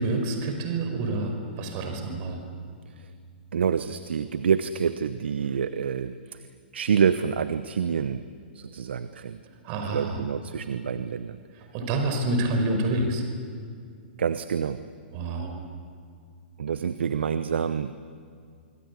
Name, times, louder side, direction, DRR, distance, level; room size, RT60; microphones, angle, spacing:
voice 1, 0.0-2.4 9.6-10.2 11.5-13.2 15.1-15.6, right 2 dB, 40° right, 5 dB, 5.1 m, -28 dB
voice 2, 3.5-6.5 6.7-8.2 8.5-9.4 9.9-11.4 14.2-14.8 16.6-17.9, right 7 dB, 75° right, 12 dB, 1.0 m, -27 dB
25.5 x 24.5 x 8.4 m, 2.3 s
hypercardioid pair, 125°, 6 cm